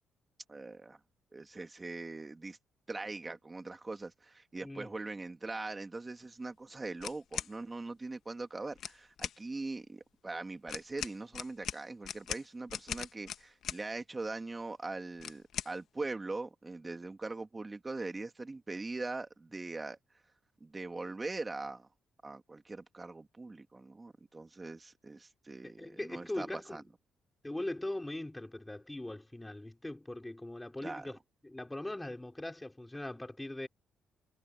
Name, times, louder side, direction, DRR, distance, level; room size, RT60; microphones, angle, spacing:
voice 1, 0.5-1.0 1.3-2.6 2.9-20.0 20.6-21.9 22.2-26.8 30.8-31.1, right 3 dB, 20° right, 2.4 m, -41 dB
sound 1, 7.0-7.5 8.7-9.4 10.7-13.8 15.2-15.7, left 9 dB, 70° left, 1.3 m, -40 dB
voice 2, 25.6-26.8 27.4-31.2 31.4-33.7, left 1 dB, 10° left, 4.8 m, -40 dB
cardioid pair, 90°, 0 cm